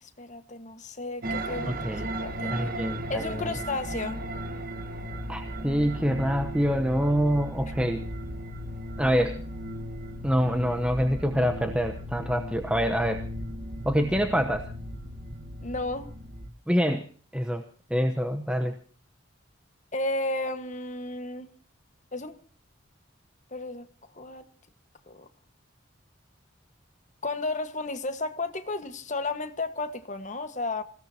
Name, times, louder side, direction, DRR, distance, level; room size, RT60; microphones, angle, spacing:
voice 1, 0.0-1.8 2.2-2.5 3.1-4.2 15.6-16.1 19.9-21.5 22.1-22.4 23.5-23.9 24.1-24.4 25.1-25.3 27.2-30.8, left 2 dB, 40° left, 1.6 m, -33 dB
sound 1, 1.2-16.5, equal, 45° right, 1.4 m, -36 dB
voice 2, 1.7-2.1 2.5-3.5 5.3-8.0 9.0-9.4 10.2-13.2 13.8-14.7 16.7-17.1 17.3-18.7, equal, 5° right, 0.9 m, -26 dB
26.5 x 17.0 x 2.9 m
head